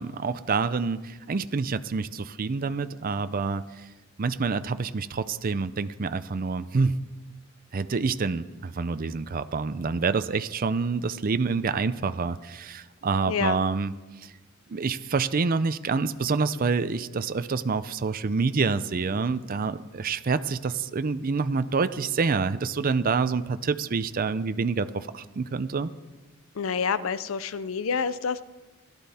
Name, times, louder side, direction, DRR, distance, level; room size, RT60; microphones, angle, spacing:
voice 1, 0.0-3.6 4.2-7.0 7.7-13.9 14.2-14.3 14.7-25.9, right 4 dB, 40° right, 12 dB, 0.5 m, -27 dB
voice 2, 13.3-13.6 26.6-28.4, left 6 dB, 65° left, 15 dB, 0.5 m, -28 dB
17.0 x 11.5 x 4.2 m, 1.1 s
head